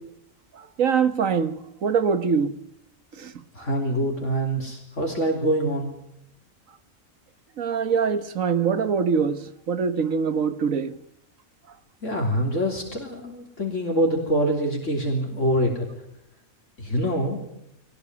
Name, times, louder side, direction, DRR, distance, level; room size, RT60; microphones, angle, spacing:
voice 1, 0.6-2.5 3.2-3.3 7.6-11.0, right 6 dB, 70° right, 1.6 m, -24 dB
voice 2, 3.5-5.9 12.0-15.9 16.8-17.4, equal, 60° left, 3.6 m, -25 dB
22.5 x 18.5 x 9.6 m
omnidirectional pair, 1.4 m